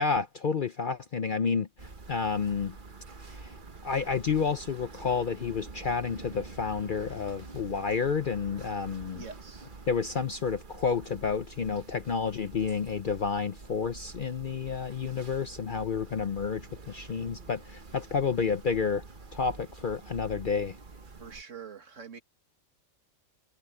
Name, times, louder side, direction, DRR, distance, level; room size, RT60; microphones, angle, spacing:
voice 1, 0.0-2.8 3.3-3.5 3.8-9.2 9.9-19.0 19.3-20.7, left 5 dB, 50° left, 0.7 m, -30 dB
sound 1, 1.8-21.4, right 3 dB, 40° right, 1.4 m, -47 dB
voice 2, 9.1-9.7 21.2-22.2, right 6 dB, 65° right, 2.2 m, -45 dB
omnidirectional pair, 1.4 m